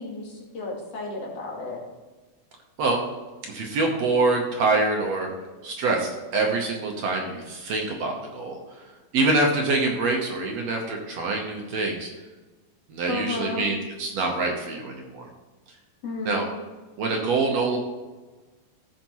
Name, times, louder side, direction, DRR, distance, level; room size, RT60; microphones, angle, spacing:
voice 1, 0.0-1.8 13.1-13.7 16.0-16.5, left 2 dB, 55° left, -2 dB, 2.5 m, -32 dB
voice 2, 3.5-5.3 5.6-8.6 9.1-12.1 12.9-15.3 16.3-16.5 17.0-17.8, right 3 dB, 65° right, 1 dB, 1.9 m, -25 dB
15.0 x 5.9 x 3.0 m, 1.3 s
omnidirectional pair, 3.7 m